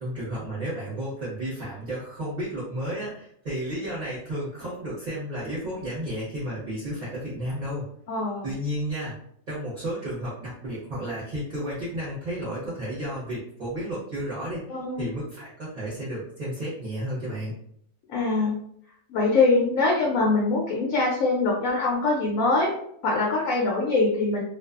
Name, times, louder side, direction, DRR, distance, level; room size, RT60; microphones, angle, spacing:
voice 1, 0.0-7.9 8.4-9.1 9.5-17.5, right 1 dB, 40° right, -8 dB, 0.7 m, -32 dB
voice 2, 8.1-8.5 14.7-15.0 18.1-18.5 19.1-22.7 23.0-24.4, left 3 dB, 70° left, -2 dB, 0.9 m, -23 dB
2.5 x 2.3 x 2.3 m, 0.69 s
omnidirectional pair, 1.5 m